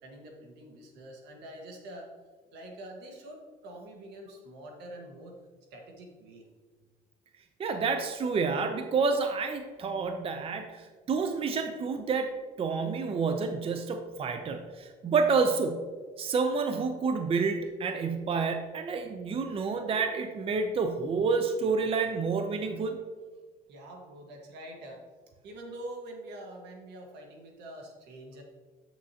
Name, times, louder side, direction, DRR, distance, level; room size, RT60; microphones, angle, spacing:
voice 1, 0.0-2.1 2.5-5.4 5.7-6.5 23.7-25.0 25.4-28.4, right 1 dB, 85° right, 1 dB, 1.5 m, -45 dB
voice 2, 7.6-12.3 12.6-15.9 16.2-23.0, right 4 dB, 35° right, 6 dB, 0.5 m, -29 dB
7.5 x 6.3 x 2.8 m, 1.4 s
cardioid pair, 110°, 17 cm